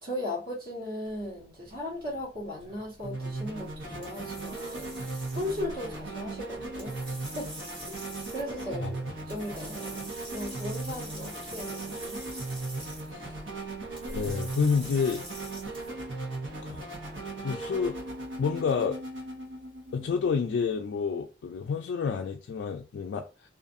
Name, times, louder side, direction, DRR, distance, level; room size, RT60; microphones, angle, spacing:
voice 1, 0.0-5.0 5.3-7.5 7.8-7.9 8.3-12.2, left 1 dB, 55° right, 1.1 m, -37 dB
sound 1, 1.1-15.9, right 1 dB, 30° right, 1.2 m, -46 dB
sound 2, 3.0-20.8, right 2 dB, 75° right, 1.1 m, -38 dB
voice 2, 13.0-13.4 14.1-15.3 16.6-16.8 17.4-18.0 18.4-19.0 19.9-23.3, left 5 dB, 75° left, 0.3 m, -29 dB
2.5 x 2.4 x 2.5 m
head